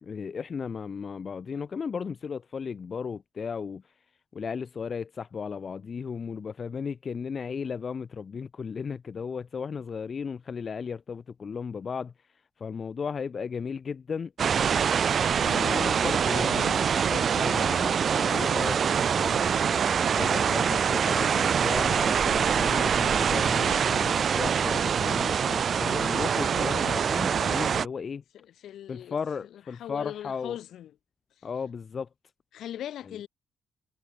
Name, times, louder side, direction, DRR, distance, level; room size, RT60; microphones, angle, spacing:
voice 1, 0.0-3.9 4.3-12.1 12.6-14.3 15.3-19.5 20.1-28.2 28.9-30.6 31.4-32.1, left 6 dB, 45° left, 1.6 m, -35 dB
sound 1, 14.4-27.9, right 7 dB, 50° right, 0.7 m, -24 dB
voice 2, 15.5-15.9 28.3-29.2 29.4-30.9 31.4-31.5 32.5-33.3, left 11 dB, 75° left, 4.2 m, -40 dB
cardioid pair, 90°, 0 cm